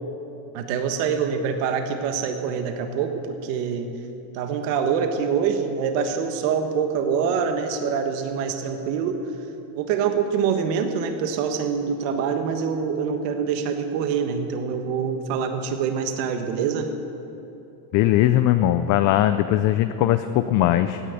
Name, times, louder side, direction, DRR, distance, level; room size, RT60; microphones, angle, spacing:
voice 1, 0.5-3.9 4.3-9.2 9.7-16.9, right 6 dB, 75° right, 6 dB, 1.6 m, -25 dB
voice 2, 17.9-21.0, left 13 dB, 40° left, 10 dB, 0.5 m, -20 dB
16.5 x 10.0 x 8.1 m, 2.9 s
cardioid pair, 150°, 49 cm